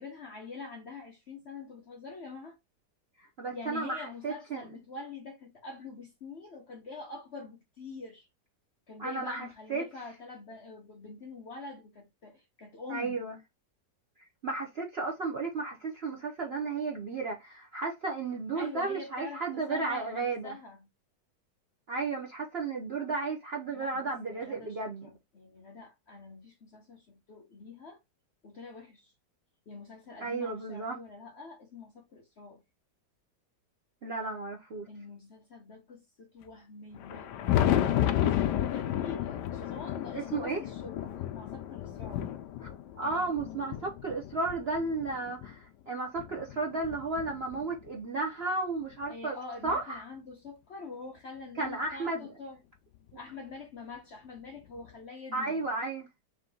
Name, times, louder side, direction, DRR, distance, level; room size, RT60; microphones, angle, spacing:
voice 1, 0.0-2.6 3.5-8.3 8.9-13.3 18.5-20.9 23.7-28.0 28.4-29.1 29.7-32.6 34.9-42.3 49.1-52.6 53.2-55.7, left 3 dB, 50° left, 0.8 m, -45 dB
voice 2, 3.2-4.6 9.0-9.8 12.9-13.4 14.4-20.5 21.9-25.1 30.2-31.0 34.0-34.9 40.3-40.6 43.0-49.4 49.6-50.0 51.6-52.3 55.3-56.1, right 3 dB, 55° right, 0.7 m, -33 dB
Thunder, 36.9-45.5 46.2-47.9 49.0-49.1 49.7-49.8 51.6-51.7 53.1-53.2 54.8-54.9, left 11 dB, 75° left, 1.1 m, -32 dB
3.7 x 2.9 x 3.7 m
omnidirectional pair, 1.9 m